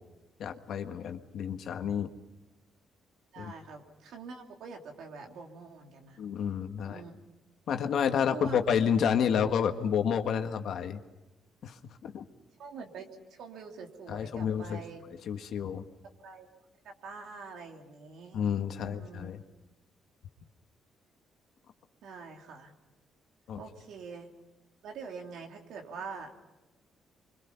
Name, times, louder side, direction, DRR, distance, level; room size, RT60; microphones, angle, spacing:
voice 1, 0.4-2.1 3.4-3.5 6.2-7.0 7.7-11.0 11.6-12.3 14.1-14.8 15.2-15.8 18.3-19.4 23.5-23.6, left 8 dB, 70° left, 6 dB, 1.7 m, -30 dB
voice 2, 3.3-6.2 6.8-7.1 8.3-8.6 12.6-15.0 16.2-16.5 16.8-18.5 18.8-19.3 22.0-22.7 23.6-24.3 24.8-26.3, right 5 dB, 80° right, 2 dB, 3.1 m, -45 dB
26.0 x 24.5 x 5.8 m, 1.1 s
cardioid pair, 90°, 0 cm